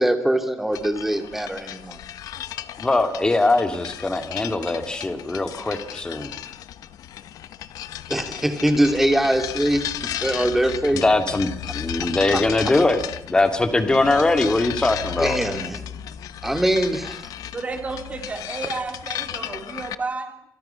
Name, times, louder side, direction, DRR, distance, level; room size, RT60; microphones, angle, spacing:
voice 1, 0.0-2.0 8.1-11.0 12.0-12.4 15.2-15.8 16.4-17.2, right 1 dB, 5° right, 7 dB, 2.5 m, -22 dB
sound 1, 0.7-19.9, left 11 dB, 85° left, 1.2 m, -34 dB
voice 2, 2.8-6.3 10.9-13.0 13.3-15.4, left 2 dB, 15° left, 7 dB, 2.5 m, -21 dB
voice 3, 17.5-20.4, right 4 dB, 25° right, 6 dB, 3.2 m, -31 dB
29.5 x 26.5 x 5.8 m, 0.71 s
cardioid pair, 170°, 6 cm